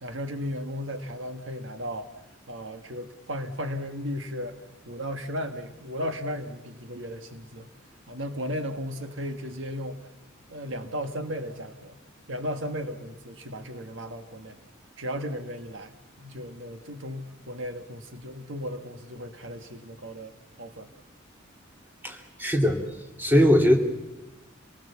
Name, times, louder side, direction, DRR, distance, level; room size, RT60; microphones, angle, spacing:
voice 1, 0.0-2.1 2.5-4.6 4.9-7.7 8.1-10.0 10.5-12.0 12.3-14.6 15.0-20.9, equal, 70° right, 7 dB, 1.5 m, -35 dB
voice 2, 22.0-22.8 23.2-23.8, equal, 10° right, 2 dB, 2.5 m, -20 dB
27.5 x 19.0 x 7.1 m, 1.0 s
head